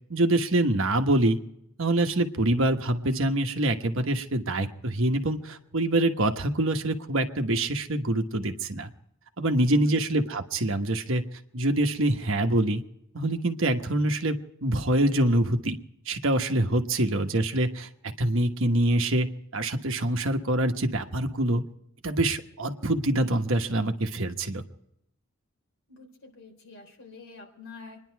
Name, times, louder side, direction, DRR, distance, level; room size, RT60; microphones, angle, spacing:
voice 1, 0.1-1.4 1.8-8.9 9.4-11.2 11.5-12.8 13.1-15.8 16.1-17.9 18.2-19.3 19.5-21.6 22.0-24.6, right 1 dB, 60° right, 5 dB, 1.2 m, -25 dB
voice 2, 9.7-10.0 25.9-28.0, left 3 dB, 60° left, 2 dB, 4.0 m, -45 dB
27.0 x 11.0 x 4.6 m, 0.79 s
head